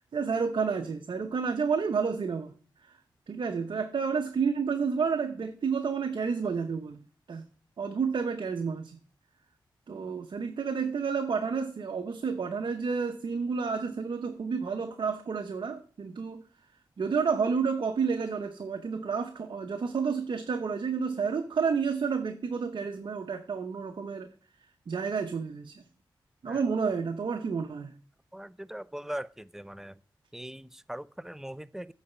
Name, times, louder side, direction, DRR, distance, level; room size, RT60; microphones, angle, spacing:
voice 1, 0.1-2.5 3.3-7.0 7.3-7.5 7.8-8.9 9.9-16.4 17.0-24.3 24.9-25.8 26.4-27.9, right 5 dB, 65° right, 0.8 m, -30 dB
voice 2, 28.3-29.3 29.5-29.9 30.3-31.9, right 1 dB, 5° right, 0.5 m, -40 dB
8.5 x 4.1 x 7.0 m
cardioid pair, 40°, 9 cm